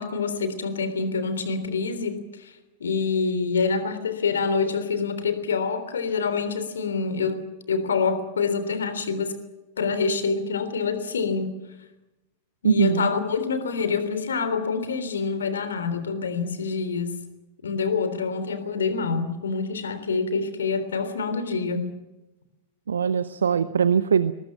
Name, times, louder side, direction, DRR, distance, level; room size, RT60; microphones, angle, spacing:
voice 1, 0.0-2.5 2.8-7.4 7.7-9.3 9.8-11.5 12.6-17.2 17.6-21.9, left 5 dB, 70° left, 11 dB, 3.5 m, -26 dB
voice 2, 12.6-13.1 22.9-24.3, right 7 dB, 70° right, 15 dB, 0.8 m, -21 dB
22.0 x 21.5 x 7.4 m, 1.0 s
figure-of-eight pair, 90°, 0 cm